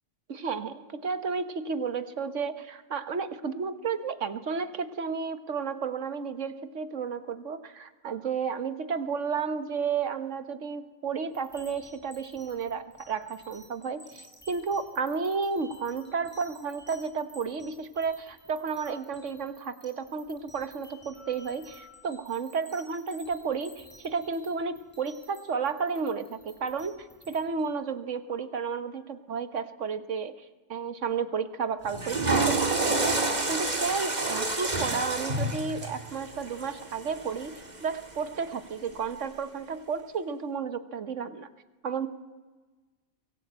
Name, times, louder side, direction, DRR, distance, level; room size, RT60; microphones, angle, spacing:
voice 1, 0.3-30.4 30.7-33.1 33.5-37.5 37.8-41.5 41.8-42.1, right 5 dB, 60° right, 11 dB, 1.4 m, -32 dB
sound 1, 11.3-27.7, equal, 5° left, 5.7 m, -54 dB
Water / Toilet flush, 31.8-38.1, right 2 dB, 30° right, 2.3 m, -29 dB
23.5 x 18.0 x 8.7 m, 1.3 s
omnidirectional pair, 1.5 m